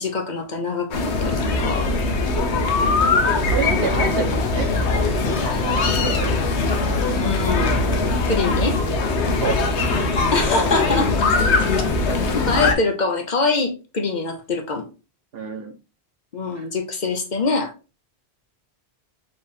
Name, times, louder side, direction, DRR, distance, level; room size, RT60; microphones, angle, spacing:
voice 1, 0.0-1.9 7.2-7.8 8.3-8.8 10.3-11.2 12.3-14.9 16.3-17.7, left 3 dB, 45° left, 4 dB, 0.8 m, -24 dB
sound 1, 0.9-12.7, left 3 dB, 90° left, 1.1 m, -21 dB
voice 2, 3.2-6.5 9.4-9.6 15.3-15.7 16.5-16.6, right 6 dB, 65° right, 4 dB, 1.2 m, -29 dB
4.4 x 3.2 x 3.4 m, 0.31 s
omnidirectional pair, 1.1 m